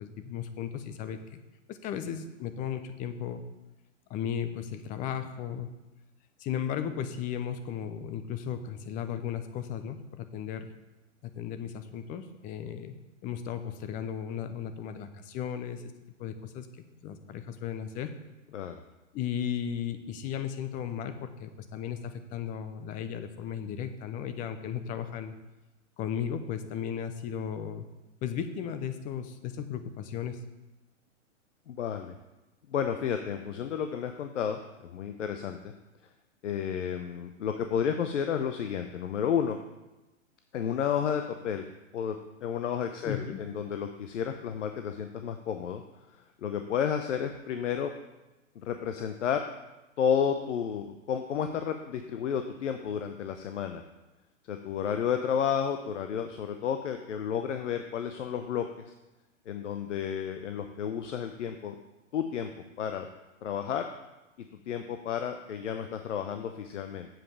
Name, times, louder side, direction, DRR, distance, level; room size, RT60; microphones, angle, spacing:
voice 1, 0.0-1.4 1.7-3.4 4.1-5.7 6.4-10.7 11.2-12.9 13.2-15.8 16.2-16.7 17.0-18.1 19.1-25.3 26.0-27.8 28.2-30.4 43.0-43.4, left 8 dB, 20° left, 9 dB, 0.6 m, -35 dB
voice 2, 31.7-32.2 32.7-35.7 36.4-39.6 40.5-41.6 41.9-45.8 46.1-47.9 48.6-49.4 50.0-53.8 54.5-58.9 59.5-61.8 62.1-62.5 62.8-63.1 63.4-63.9 64.7-67.1, left 8 dB, 70° left, 6 dB, 0.8 m, -31 dB
7.6 x 5.3 x 7.3 m, 1.0 s
hypercardioid pair, 120°, 38 cm